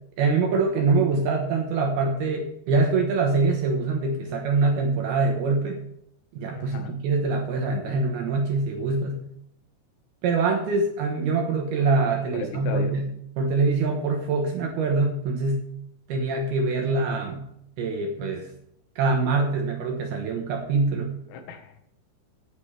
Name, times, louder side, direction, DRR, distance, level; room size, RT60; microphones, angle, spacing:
voice 1, 0.2-5.8 6.4-9.2 10.2-13.1 13.4-15.7 16.1-17.5 17.8-18.5 19.0-21.1, right 3 dB, 70° right, 3 dB, 2.4 m, -24 dB
voice 2, 6.5-6.9 12.3-12.9 21.3-21.8, left 5 dB, 90° left, 6 dB, 4.1 m, -35 dB
17.0 x 9.0 x 3.3 m, 0.74 s
omnidirectional pair, 5.8 m